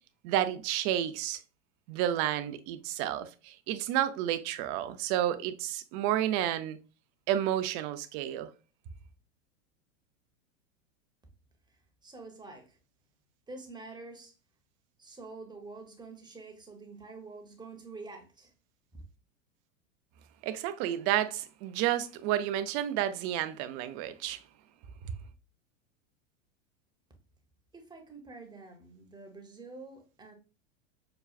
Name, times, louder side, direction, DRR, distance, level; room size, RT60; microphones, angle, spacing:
voice 1, 0.2-1.4 1.9-6.8 7.3-8.5 20.4-24.4 25.0-25.1, right 12 dB, 40° right, 0.5 m, -31 dB
voice 2, 11.7-12.8 13.5-14.3 15.0-18.5 18.9-19.0 27.7-30.3, right 3 dB, 10° right, 0.8 m, -47 dB
5.8 x 2.3 x 2.4 m
hypercardioid pair, 105°, 39 cm